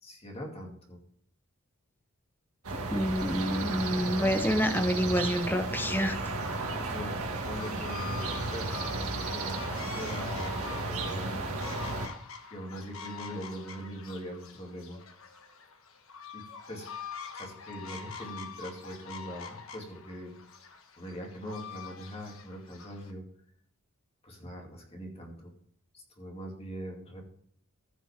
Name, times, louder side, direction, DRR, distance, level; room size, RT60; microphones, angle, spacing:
voice 1, 0.0-1.0 6.7-7.2 7.4-8.2 8.5-11.6 12.5-15.0 16.3-16.9 17.3-20.3 21.0-23.2 24.2-25.5 25.9-27.3, equal, 25° left, 0 dB, 2.6 m, -41 dB
sound 1, 2.6-12.1, right 3 dB, 75° right, 1.8 m, -34 dB
voice 2, 2.9-6.2, equal, 10° left, 7 dB, 0.8 m, -28 dB
sound 2, 7.5-23.1, left 6 dB, 65° left, 1.3 m, -45 dB
15.0 x 6.0 x 3.6 m, 0.64 s
head